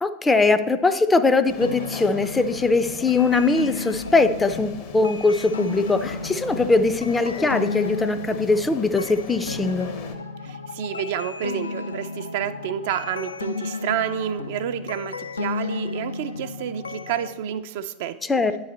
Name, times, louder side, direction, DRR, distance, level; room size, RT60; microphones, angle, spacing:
voice 1, 0.0-9.9 18.3-18.5, left 3 dB, 15° left, 11 dB, 0.4 m, -21 dB
sound 1, 1.5-10.1, left 5 dB, 55° left, 0.8 m, -39 dB
sound 2, 1.6-17.3, left 4 dB, 85° left, 0.4 m, -33 dB
voice 2, 10.4-18.2, right 9 dB, 60° right, 10 dB, 0.4 m, -29 dB
9.0 x 3.9 x 4.2 m, 1.1 s
figure-of-eight pair, 85°, 0 cm